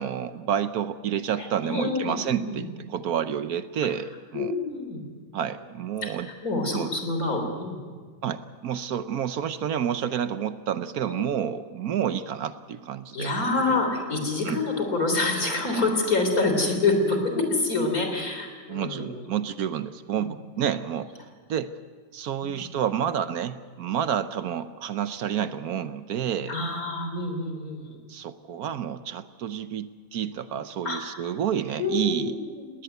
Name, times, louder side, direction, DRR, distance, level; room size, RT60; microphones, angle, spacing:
voice 1, 0.0-4.5 5.3-6.3 6.7-6.9 8.2-13.3 14.4-14.6 18.7-21.1 21.5-21.7 22.1-26.6 28.1-32.3, right 9 dB, 70° right, 12 dB, 1.2 m, -29 dB
voice 2, 1.4-2.6 4.3-5.0 6.0-6.1 6.4-7.9 11.0-11.2 13.1-19.2 22.4-22.6 26.5-27.9 30.8-31.0 31.8-32.7, left 3 dB, 60° left, 4 dB, 4.0 m, -27 dB
20.0 x 19.0 x 8.1 m, 1.5 s
omnidirectional pair, 1.7 m